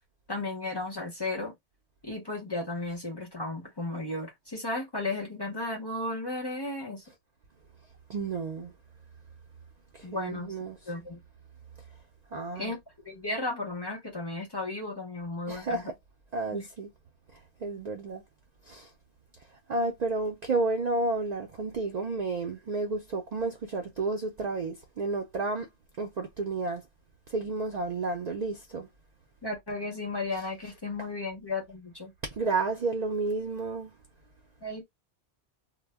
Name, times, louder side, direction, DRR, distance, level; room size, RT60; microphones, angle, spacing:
voice 1, 0.3-1.5 2.0-7.0 10.0-10.5 10.8-11.2 12.5-12.8 13.0-15.8 16.5-16.7 29.4-32.1 34.6-34.8, left 2 dB, 25° left, 0.7 m, -34 dB
voice 2, 8.1-8.7 9.9-10.8 12.3-12.7 15.5-15.9 16.3-16.9 17.3-18.2 18.7-18.9 19.7-25.7 26.0-26.8 27.3-28.9 32.4-33.9, right 3 dB, 55° right, 0.4 m, -31 dB
2.1 x 2.0 x 3.4 m
omnidirectional pair, 1.1 m